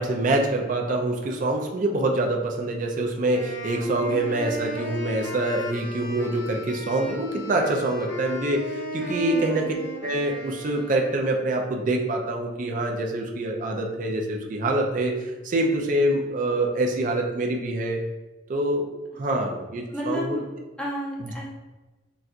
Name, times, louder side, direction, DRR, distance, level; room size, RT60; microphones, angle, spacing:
voice 1, 0.0-9.7 10.0-15.2 15.4-18.0 18.5-18.9 19.2-20.4 21.2-21.3, right 1 dB, 45° right, 1 dB, 0.4 m, -25 dB
Wind instrument woodwind instrument, 3.3-11.4, equal, 75° left, 0.6 m, -36 dB
voice 2, 3.8-4.2 9.3-9.8 19.3-19.5 19.9-20.5 20.8-21.5, equal, 5° left, -6 dB, 0.7 m, -33 dB
4.0 x 2.3 x 2.5 m, 1.2 s
head